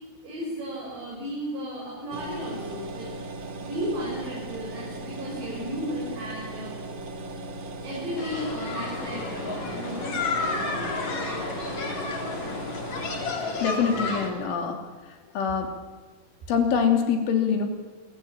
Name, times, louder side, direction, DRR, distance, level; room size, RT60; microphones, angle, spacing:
voice 1, 0.2-3.1 3.6-6.8 7.8-11.2, equal, 65° right, -4 dB, 8.9 m, -34 dB
sound 1, 2.1-13.3, right 2 dB, 85° right, 1.0 m, -38 dB
sound 2, 8.2-14.3, left 3 dB, 40° left, 4.3 m, -31 dB
voice 2, 13.6-14.8 15.4-15.7 16.5-17.7, left 6 dB, 80° left, 4 dB, 5.5 m, -24 dB
28.0 x 22.5 x 8.9 m, 1.3 s
omnidirectional pair, 5.5 m